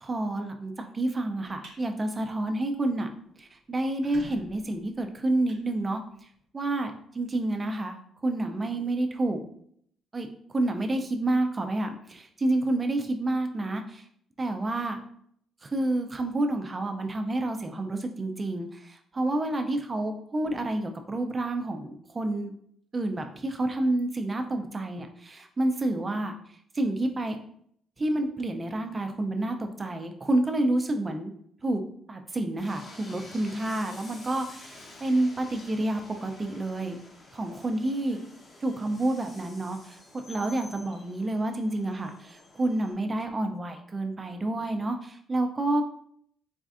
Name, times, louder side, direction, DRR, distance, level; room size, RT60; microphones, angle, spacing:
voice 1, 0.0-3.1 3.4-6.0 6.5-8.0 8.2-9.4 10.1-14.0 14.4-15.0 15.6-22.5 22.9-26.3 26.7-27.4 28.0-31.3 31.6-31.8 32.1-37.0 37.3-38.2 38.6-45.8, right 2 dB, 25° right, 5 dB, 0.4 m, -29 dB
sound 1, 1.6-1.8 2.3-2.5 2.9-3.0 3.2-3.3 3.8-6.4, right 2 dB, 65° right, 0.7 m, -49 dB
Train, 32.6-42.9, left 2 dB, 35° left, 0.7 m, -50 dB
4.2 x 2.5 x 2.4 m, 0.66 s
cardioid pair, 125°, 0 cm